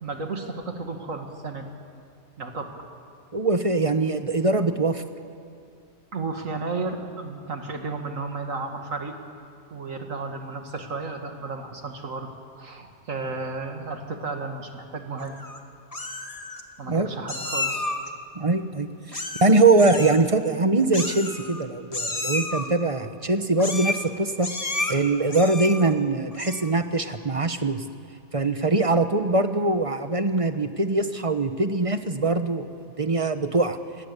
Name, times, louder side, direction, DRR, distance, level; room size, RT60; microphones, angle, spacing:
voice 1, 0.0-1.7 2.4-2.7 6.1-9.2 9.7-12.3 12.6-15.4 16.8-17.8 19.1-19.2, right 3 dB, 65° right, 4 dB, 2.6 m, -33 dB
voice 2, 3.3-5.0 16.9-17.1 18.4-24.5 24.9-27.8 28.3-32.7 33.0-33.8, right 3 dB, 25° right, 9 dB, 1.0 m, -22 dB
Meow, 15.2-15.6 15.9-16.6 17.3-18.1 19.1-19.5 19.8-20.2 20.9-21.6 21.9-22.7 23.6-24.1 24.4-24.9 25.3-25.9 26.3-26.7, left 2 dB, 25° left, 1.8 m, -31 dB
27.5 x 22.5 x 8.3 m, 2.4 s
omnidirectional pair, 1.5 m